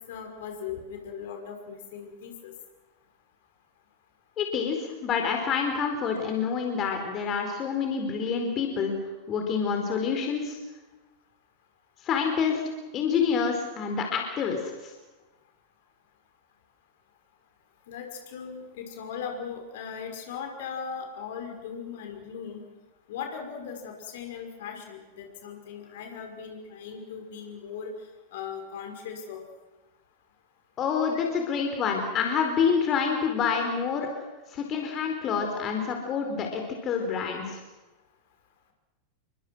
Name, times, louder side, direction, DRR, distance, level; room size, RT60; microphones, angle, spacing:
voice 1, 0.1-2.5 17.9-22.6 23.1-27.9 28.3-29.4, left 6 dB, 55° left, 4 dB, 5.8 m, -38 dB
voice 2, 4.4-8.9 9.3-10.6 12.0-12.6 12.9-14.9 30.8-34.1 34.5-37.6, left 6 dB, 30° left, 3 dB, 4.5 m, -27 dB
30.0 x 24.0 x 6.4 m, 1.1 s
figure-of-eight pair, 90°, 0 cm